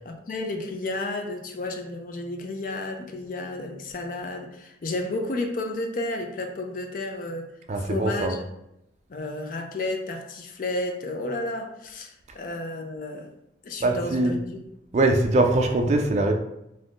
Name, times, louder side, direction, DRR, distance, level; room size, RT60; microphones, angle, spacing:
voice 1, 0.1-7.5 7.8-8.4 9.1-13.3 13.6-14.6, left 2 dB, 45° left, 4 dB, 0.4 m, -32 dB
voice 2, 7.7-8.4 13.8-14.3 14.9-16.3, right 2 dB, 35° right, 4 dB, 0.3 m, -22 dB
2.6 x 2.5 x 3.5 m, 0.84 s
head